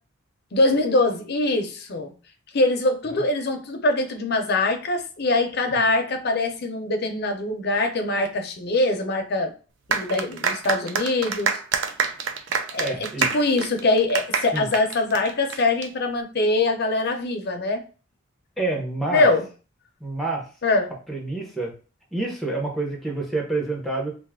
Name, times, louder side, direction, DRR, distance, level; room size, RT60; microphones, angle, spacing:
voice 1, 0.5-2.1 2.5-9.5 9.9-11.6 12.7-17.8 19.1-19.5 20.6-20.9, left 2 dB, 50° left, 5 dB, 0.6 m, -23 dB
sound 1, 9.9-15.9, right 6 dB, 60° right, 0.4 m, -27 dB
voice 2, 12.7-13.3 14.5-14.7 18.6-19.3 20.0-20.4 21.1-21.7 22.1-24.1, right 2 dB, ahead, -1 dB, 0.7 m, -28 dB
2.5 x 2.3 x 3.5 m, 0.35 s
head